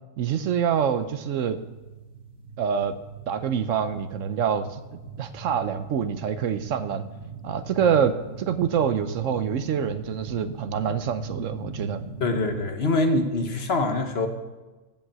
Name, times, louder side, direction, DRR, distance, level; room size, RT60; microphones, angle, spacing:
voice 1, 0.2-1.6 2.6-3.0 3.3-4.8 5.2-7.1 7.4-12.0, right 7 dB, 70° right, 12 dB, 1.0 m, -26 dB
sound 1, 0.7-12.6, right 4 dB, 45° right, 2.2 m, -40 dB
voice 2, 12.2-14.3, left 2 dB, 50° left, 6 dB, 1.3 m, -24 dB
15.5 x 5.5 x 7.3 m, 1.2 s
omnidirectional pair, 1.4 m